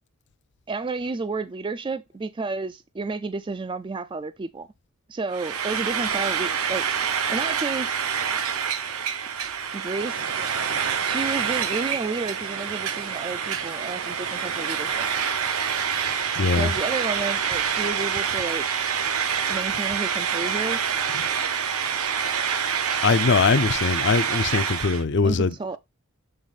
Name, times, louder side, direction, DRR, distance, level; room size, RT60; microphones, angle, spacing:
voice 1, 0.7-4.7 5.1-6.8 7.3-8.0 9.7-10.3 11.0-15.1 16.5-18.7 19.5-20.8 25.2-25.8, right 3 dB, 20° right, 0.3 m, -31 dB
Frying (food), 5.3-25.0, right 7 dB, 75° right, 1.1 m, -27 dB
sound 1, 10.0-18.1, right 5 dB, 55° right, 1.2 m, -39 dB
voice 2, 16.4-16.7 23.0-25.5, left 4 dB, 55° left, 0.5 m, -21 dB
7.8 x 3.6 x 4.1 m
head